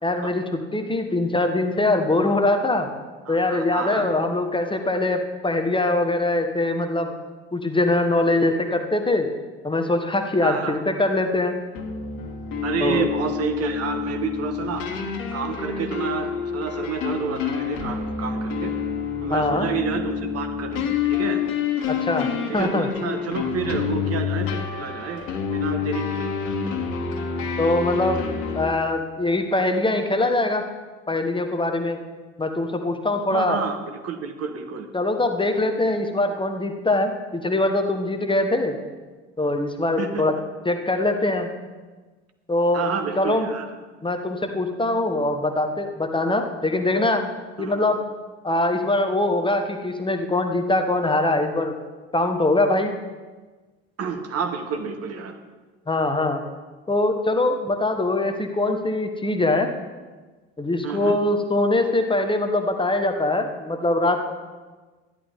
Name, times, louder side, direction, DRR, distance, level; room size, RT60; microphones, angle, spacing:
voice 1, 0.0-2.9 3.3-7.1 7.5-9.3 9.6-11.6 12.8-13.1 19.3-19.7 21.9-22.9 27.6-28.2 28.5-30.7 31.1-32.0 32.4-33.6 34.9-38.8 39.4-40.4 40.6-41.5 42.5-43.5 44.0-47.3 47.6-48.0 48.4-51.8 52.1-53.0 55.9-56.4 56.9-59.7 60.6-64.3, left 2 dB, 15° left, 5 dB, 1.2 m, -23 dB
voice 2, 3.3-4.1 10.4-10.7 12.6-14.9 15.3-18.7 19.2-21.4 22.5-25.3 25.5-26.3 33.3-34.9 40.0-40.3 42.7-43.7 47.6-47.8 54.0-55.4 60.8-61.2, right 6 dB, 45° right, 6 dB, 1.3 m, -29 dB
sound 1, 11.7-28.7, left 6 dB, 60° left, 1.6 m, -28 dB
13.0 x 11.0 x 3.6 m, 1.3 s
figure-of-eight pair, 60°, 34 cm